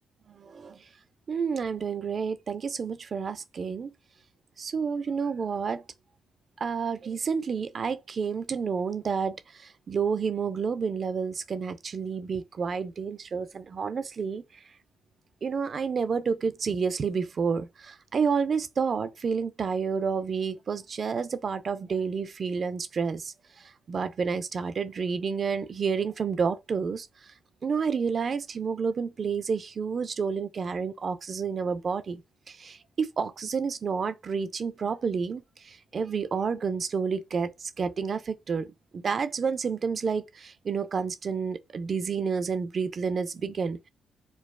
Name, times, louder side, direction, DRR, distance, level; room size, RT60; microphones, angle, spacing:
voice 1, 0.4-0.8 1.3-3.9 4.6-5.8 6.6-9.4 9.9-14.4 15.4-23.3 23.9-27.1 27.6-32.2 32.5-43.8, right 5 dB, 45° right, 0.4 m, -30 dB
4.6 x 2.3 x 2.3 m
cardioid pair, 90°, 0 cm